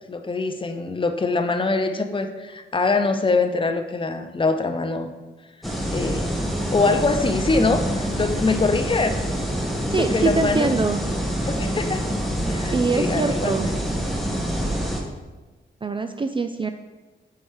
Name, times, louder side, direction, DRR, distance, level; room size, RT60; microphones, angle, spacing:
voice 1, 0.1-5.1 5.9-6.3 6.7-9.2 9.9-10.7 11.5-12.0 12.5-13.7, left 3 dB, 25° left, 7 dB, 0.6 m, -23 dB
sound 1, 5.6-15.0, equal, ahead, 1.1 m, -26 dB
voice 2, 9.9-11.0 12.7-13.7 15.8-16.7, right 4 dB, 25° right, 7 dB, 0.3 m, -24 dB
4.8 x 4.3 x 5.6 m, 1.2 s
cardioid pair, 70°, 20 cm